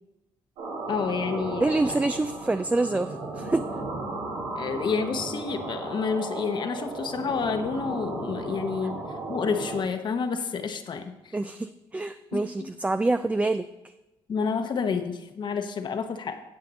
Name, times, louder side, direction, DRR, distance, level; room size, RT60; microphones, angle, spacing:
sound 1, 0.6-9.8, right 2 dB, 80° right, 1.9 m, -35 dB
voice 1, 0.9-1.8 4.6-8.9 9.3-11.3 12.3-12.7 14.3-16.4, left 5 dB, 50° left, 7 dB, 1.0 m, -29 dB
voice 2, 1.6-3.6 11.3-13.9, right 2 dB, 15° right, 10 dB, 0.4 m, -26 dB
9.7 x 7.8 x 4.1 m, 0.98 s
supercardioid pair, 60°, 10 cm